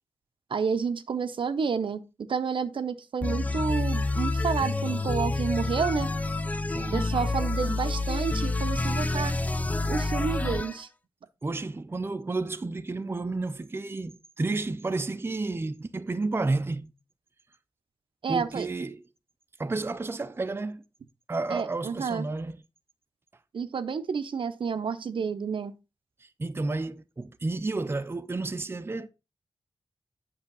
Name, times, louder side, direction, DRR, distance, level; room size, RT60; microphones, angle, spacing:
voice 1, 0.5-6.1 6.9-9.3 9.9-10.9 18.2-18.7 21.5-22.3 23.5-25.7, right 6 dB, 70° right, 0.7 m, -30 dB
sound 1, 3.2-10.8, left 2 dB, 15° left, 0.6 m, -28 dB
voice 2, 6.7-7.1 11.4-16.9 18.3-19.0 19.6-20.8 21.3-22.6 26.2-29.1, right 3 dB, 25° right, 0.6 m, -31 dB
8.2 x 6.2 x 3.9 m
wide cardioid pair, 85°, 9 cm